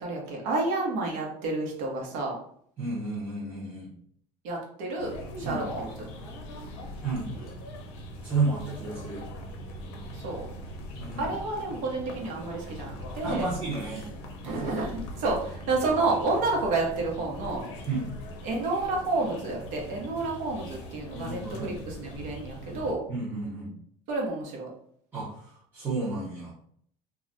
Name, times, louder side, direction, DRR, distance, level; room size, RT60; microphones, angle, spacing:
voice 1, 0.0-2.4 4.4-5.9 10.1-10.4 11.2-13.5 14.4-17.6 18.4-23.0 24.1-24.7, right 3 dB, 60° right, -1 dB, 0.9 m, -30 dB
voice 2, 2.8-3.9 5.4-5.6 7.0-7.5 8.2-9.2 11.0-11.3 13.2-14.1 14.4-14.7 17.9-18.1 21.1-21.8 23.1-23.7 25.1-26.6, right 3 dB, 15° right, -10 dB, 0.6 m, -32 dB
sound 1, 5.0-22.9, equal, 75° left, 0.6 m, -41 dB
2.3 x 2.1 x 3.8 m, 0.65 s
cardioid pair, 180°, 14 cm